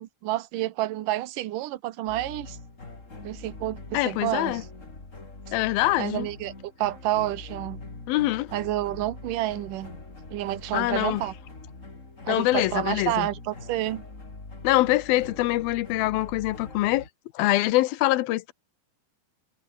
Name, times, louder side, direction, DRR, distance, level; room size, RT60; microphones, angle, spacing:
voice 1, 0.0-2.6 3.2-4.6 6.0-7.8 8.5-9.9 10.3-11.3 12.2-14.0, right 15 dB, 70° right, 2.6 m, -29 dB
sound 1, 2.1-17.1, left 3 dB, 20° left, 3.8 m, -43 dB
voice 2, 3.9-4.6 5.5-6.3 8.1-8.5 10.7-11.2 12.3-13.3 14.6-17.0 17.3-18.5, left 17 dB, 80° left, 2.8 m, -24 dB
omnidirectional pair, 4.2 m